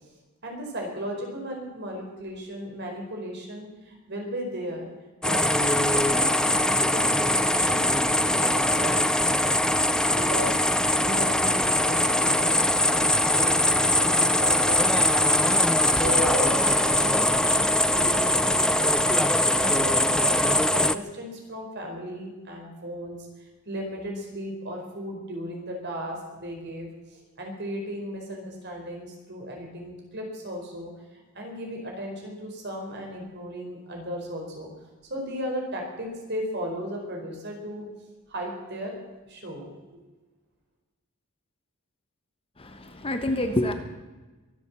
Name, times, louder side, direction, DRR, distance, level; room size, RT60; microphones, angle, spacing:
voice 1, 0.4-4.9 5.2-9.2 10.1-10.6 11.0-15.5 15.9-19.2 19.5-34.7 35.1-37.9 38.3-40.0, equal, 50° right, 1 dB, 4.7 m, -36 dB
sound 1, 5.2-21.0, left 1 dB, 5° left, 0.4 m, -22 dB
voice 2, 42.6-43.7, left 1 dB, 25° left, 7 dB, 1.2 m, -27 dB
23.0 x 7.9 x 7.5 m, 1.2 s
head